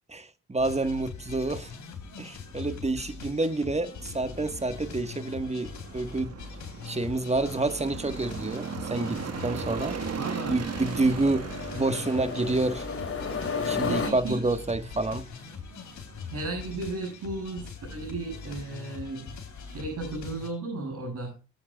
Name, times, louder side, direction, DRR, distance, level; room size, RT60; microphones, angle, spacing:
voice 1, 0.1-1.7 2.2-6.3 6.8-10.0 10.5-11.5 11.7-12.8 13.6-15.3, right 2 dB, 20° right, 1.5 m, -28 dB
sound 1, 0.6-20.5, left 6 dB, 70° left, 3.4 m, -42 dB
sound 2, 0.6-20.0, right 6 dB, 55° right, 1.7 m, -41 dB
sound 3, 6.8-14.1, left 5 dB, 45° left, 2.5 m, -36 dB
voice 2, 10.1-10.6 11.9-12.1 13.8-14.5 16.3-19.3 19.6-21.4, right 2 dB, 70° right, 7.7 m, -35 dB
23.0 x 8.3 x 2.4 m
supercardioid pair, 55°, 30 cm